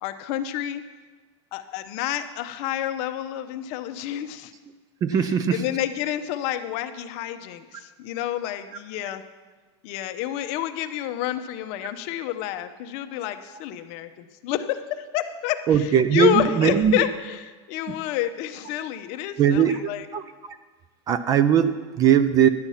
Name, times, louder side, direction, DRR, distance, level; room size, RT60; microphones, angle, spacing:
voice 1, 0.0-0.8 1.5-4.5 5.1-9.3 9.8-20.1, left 12 dB, 45° left, 9 dB, 0.7 m, -29 dB
voice 2, 5.0-5.6 15.7-17.0 19.4-19.8 20.1-20.6 21.1-22.5, right 8 dB, 25° right, 12 dB, 0.4 m, -20 dB
11.5 x 8.8 x 5.6 m, 1.4 s
supercardioid pair, 155°, 15 cm